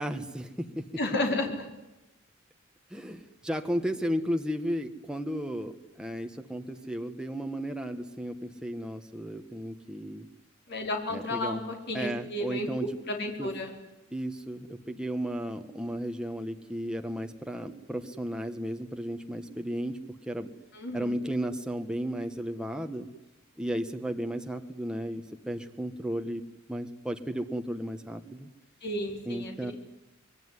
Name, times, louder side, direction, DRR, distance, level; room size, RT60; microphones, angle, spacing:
voice 1, 0.0-0.8 2.9-10.3 11.1-11.6 11.9-12.9 13.4-13.5 14.1-20.0 20.3-20.5 20.9-23.1 23.6-26.4 26.7-28.5 29.3-29.7, equal, 5° right, 5 dB, 1.5 m, -34 dB
voice 2, 1.0-1.7 10.7-13.7 20.7-21.2 28.8-29.7, left 1 dB, 55° left, 2 dB, 5.1 m, -32 dB
26.0 x 22.5 x 9.8 m, 1.0 s
head